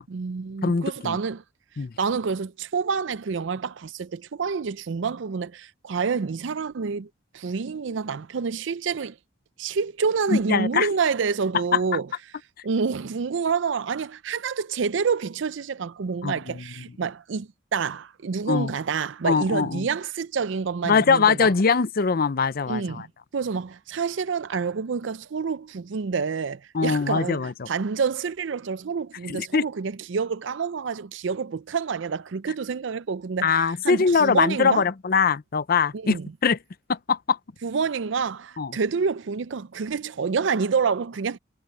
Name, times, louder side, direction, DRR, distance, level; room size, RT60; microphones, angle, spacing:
voice 1, 0.1-1.4 2.0-9.2 9.6-12.1 12.6-21.5 22.7-23.1 23.3-34.8 35.9-36.3 37.6-41.4, right 5 dB, 65° right, 0.5 m, -28 dB
voice 2, 0.6-1.2 1.8-1.9 10.3-10.9 16.2-16.6 18.5-18.7 19.2-19.9 20.8-23.1 26.7-27.7 29.3-29.6 33.4-36.2 36.4-36.6 36.9-37.4 38.6-38.7, left 5 dB, 45° left, 0.5 m, -22 dB
head